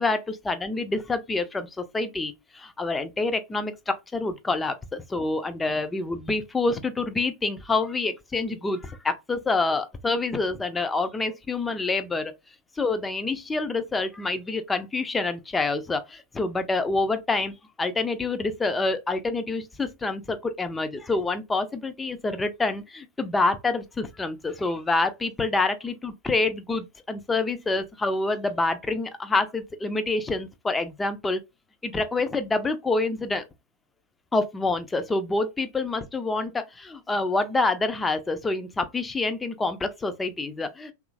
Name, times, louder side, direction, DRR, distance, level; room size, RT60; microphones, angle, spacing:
voice 1, 0.0-12.3 12.8-17.5 17.8-31.4 31.8-33.4 34.3-40.9, left 3 dB, 10° left, 0.4 m, -27 dB
3.0 x 2.4 x 2.4 m
figure-of-eight pair, 90°, 0 cm